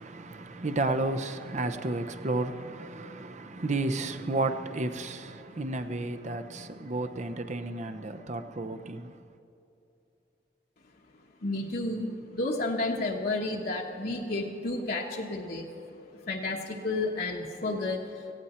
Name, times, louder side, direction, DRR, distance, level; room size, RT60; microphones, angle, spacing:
voice 1, 0.0-9.2, right 2 dB, 40° right, 0.8 m, -32 dB
voice 2, 11.4-15.7 16.3-18.3, left 2 dB, 60° left, 1.2 m, -31 dB
18.0 x 15.0 x 4.4 m
head